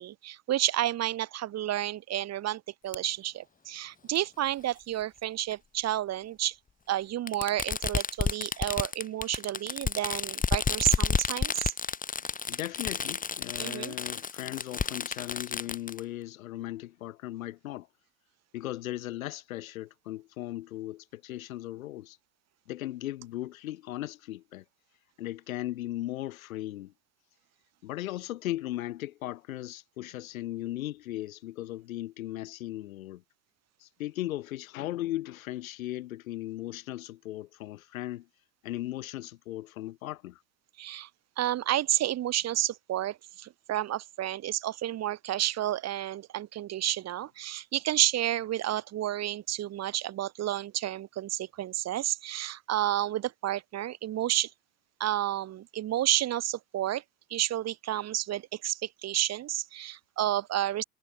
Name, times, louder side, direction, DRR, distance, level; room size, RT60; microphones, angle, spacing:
voice 1, 0.0-6.6 6.9-11.7 13.6-14.0 40.8-41.1 41.4-54.5 55.0-57.0 57.3-60.8, right 13 dB, 35° right, 4.2 m, -30 dB
Fireworks, 2.9-3.0 4.2-4.3 5.5-5.6 7.3-16.0, left 5 dB, 20° left, 4.3 m, -31 dB
voice 2, 12.5-17.9 18.5-22.2 22.7-24.6 25.2-26.9 27.8-33.2 33.8-38.3 38.6-40.4, left 15 dB, 65° left, 7.2 m, -37 dB
figure-of-eight pair, 85°, 45 cm